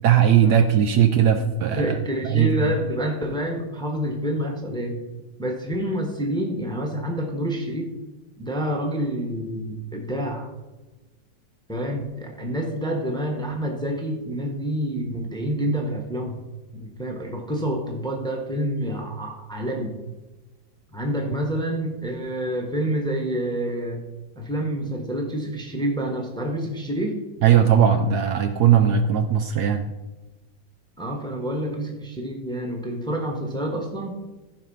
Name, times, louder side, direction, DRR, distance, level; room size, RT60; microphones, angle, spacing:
voice 1, 0.0-2.0 2.3-2.5 27.4-29.9, right 9 dB, 70° right, 7 dB, 1.1 m, -18 dB
voice 2, 0.9-1.5 1.8-5.0 5.4-7.9 8.4-10.5 11.7-16.3 16.7-20.0 20.9-24.0 24.3-27.2 31.0-34.2, equal, 5° left, 1 dB, 1.0 m, -28 dB
14.0 x 5.3 x 5.6 m, 1.1 s
omnidirectional pair, 2.0 m